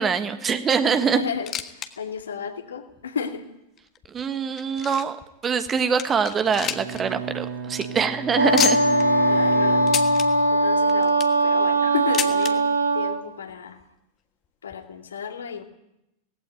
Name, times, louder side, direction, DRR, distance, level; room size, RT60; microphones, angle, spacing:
voice 1, 0.0-1.2 4.1-5.2 5.4-8.8, right 6 dB, 20° right, 10 dB, 1.4 m, -24 dB
voice 2, 1.0-3.5 8.4-8.7 9.3-9.9 10.5-12.6 12.9-13.8 14.6-15.6, left 6 dB, 70° left, 4 dB, 2.4 m, -32 dB
sound 1, 1.2-1.9 2.2-2.3 3.0-3.1 3.8-5.2 5.7-5.8 6.0-7.0 7.3-7.4 7.7-7.9 8.6-9.0 9.9-10.3 10.9-11.4 12.1-12.5 13.5-13.6 13.8-13.9 14.7-14.8, left 8 dB, 30° left, 1.4 m, -29 dB
Bowed string instrument, 6.4-10.8, right 7 dB, 45° right, 2.8 m, -32 dB
Wind instrument woodwind instrument, 8.4-13.2, right 1 dB, 80° right, 1.9 m, -20 dB
18.0 x 16.0 x 9.1 m, 0.87 s
figure-of-eight pair, 90°, 0 cm